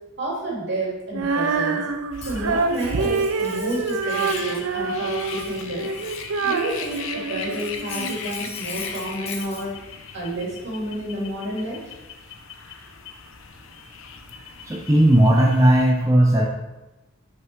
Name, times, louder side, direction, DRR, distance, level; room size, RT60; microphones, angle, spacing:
voice 1, 0.2-1.8 2.2-5.9 6.4-9.7 10.1-11.9, right 1 dB, 55° right, -4 dB, 2.5 m, -30 dB
Female singing, 1.1-8.2, right 4 dB, 85° right, 0.5 m, -26 dB
sound 1, 2.1-15.9, left 5 dB, 75° left, 0.7 m, -38 dB
Cutlery silverware, 2.2-4.7 4.9-7.1 7.4-9.7, left 6 dB, 30° left, 0.8 m, -41 dB
voice 2, 14.6-16.5, right 1 dB, 15° right, -2 dB, 0.6 m, -16 dB
5.9 x 5.6 x 4.6 m, 1.0 s
head